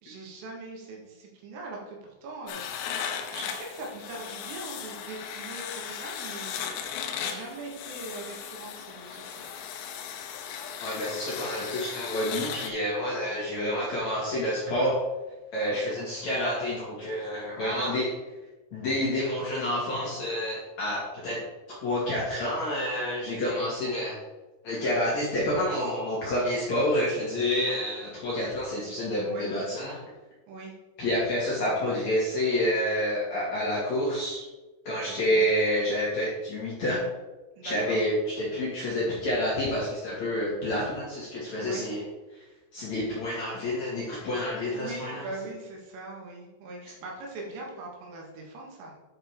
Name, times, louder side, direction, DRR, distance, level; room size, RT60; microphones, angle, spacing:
voice 1, 0.0-2.6 3.3-6.7 7.1-9.5 17.6-18.0 29.2-29.5 30.5-30.7 35.1-35.5 37.6-38.0 41.6-41.9 44.7-48.9, right 3 dB, 80° right, -2 dB, 4.4 m, -41 dB
sound 1, 2.5-12.7, left 8 dB, 80° left, 2.7 m, -37 dB
voice 2, 10.8-15.0 15.5-18.1 18.7-21.4 21.8-24.2 24.6-30.0 31.0-34.4 34.8-37.0 37.6-42.0 42.3-42.4 42.7-45.3, left 1 dB, 50° left, -7 dB, 2.4 m, -28 dB
9.9 x 5.0 x 4.6 m, 1.1 s
omnidirectional pair, 5.7 m